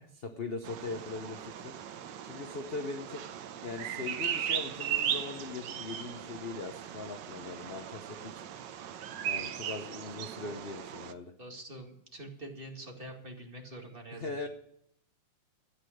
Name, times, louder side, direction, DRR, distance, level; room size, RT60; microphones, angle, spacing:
voice 1, 0.2-1.7 2.2-3.2 3.6-8.4 9.3-11.3 14.1-14.5, left 3 dB, 45° left, 6 dB, 0.8 m, -40 dB
Bird vocalization bird call bird song, 0.6-11.1, right 9 dB, 70° right, 1.4 m, -37 dB
voice 2, 11.4-14.3, right 1 dB, 25° right, 1 dB, 2.2 m, -45 dB
13.0 x 9.6 x 6.5 m, 0.71 s
omnidirectional pair, 2.2 m